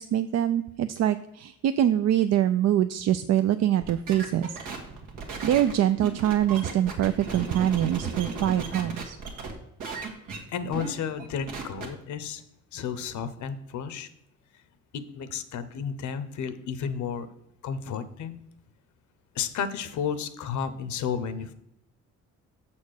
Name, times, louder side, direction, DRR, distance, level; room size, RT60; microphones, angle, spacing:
voice 1, 0.0-4.6 5.4-9.2, right 11 dB, 60° right, 10 dB, 0.4 m, -24 dB
sound 1, 3.8-9.5 9.8-10.4 10.7-10.9 11.2-11.9, right 4 dB, 85° right, 1.6 m, -36 dB
voice 2, 10.5-12.4 12.7-14.1 14.9-17.3 17.6-18.4 19.3-21.5, left 7 dB, 70° left, 13 dB, 0.8 m, -32 dB
7.0 x 4.3 x 6.5 m, 0.79 s
cardioid pair, 90°, 30 cm